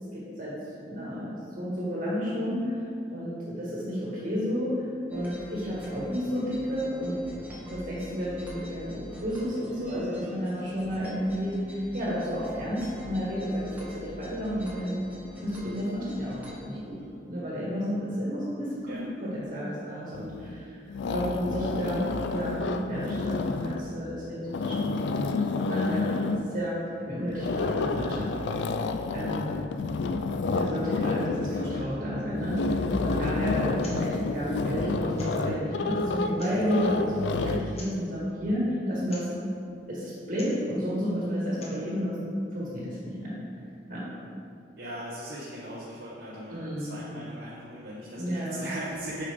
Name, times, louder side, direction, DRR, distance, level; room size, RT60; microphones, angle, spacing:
voice 1, 0.1-0.6 0.8-2.7 3.1-4.8 5.1-7.2 7.7-15.0 15.4-16.4 16.6-17.0 17.3-20.8 21.1-26.2 26.5-28.3 29.1-29.5 30.5-39.3 39.9-43.3 43.9-44.0 46.5-47.0 48.2-48.6, equal, 50° right, -7 dB, 1.7 m, -31 dB
sound 1, 5.1-16.6, left 1 dB, 10° right, 1.1 m, -45 dB
sound 2, 20.1-20.6 20.9-23.9 24.4-26.5 27.3-37.6, left 3 dB, 80° left, 0.4 m, -29 dB
voice 2, 31.0-31.3 31.6-31.9 44.8-49.2, right 1 dB, 75° right, -7 dB, 1.1 m, -39 dB
sound 3, 33.8-34.0 34.3-34.4 35.2-35.5 36.2-36.7 37.7-38.1 39.1-39.3 40.3-40.6 41.4-41.9, left 2 dB, 35° left, 1.2 m, -47 dB
8.2 x 5.6 x 3.5 m, 2.4 s
head